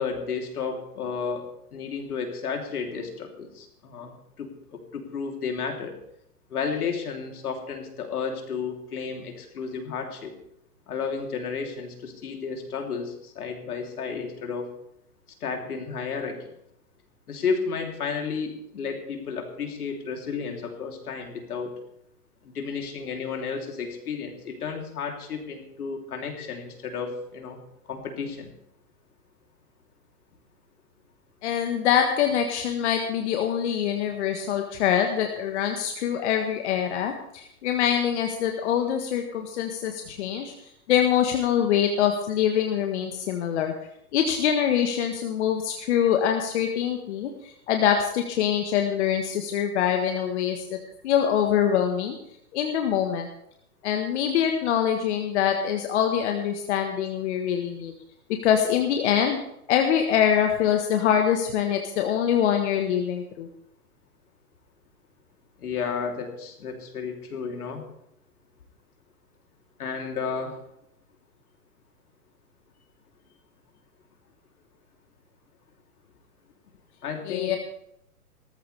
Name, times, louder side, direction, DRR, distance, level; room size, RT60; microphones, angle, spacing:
voice 1, 0.0-5.9 6.5-10.3 10.9-14.7 15.4-16.5 17.3-21.7 22.4-27.6 27.9-28.5 65.6-67.8 69.8-70.6 77.0-77.6, left 5 dB, 75° left, 3 dB, 3.4 m, -32 dB
voice 2, 31.4-40.5 40.9-43.7 44.1-50.8 51.0-52.2 52.5-53.3 53.8-57.9 58.4-59.4 59.7-63.5 77.2-77.6, left 9 dB, 45° left, 4 dB, 1.5 m, -24 dB
18.0 x 14.0 x 3.4 m, 0.75 s
hypercardioid pair, 140°, 46 cm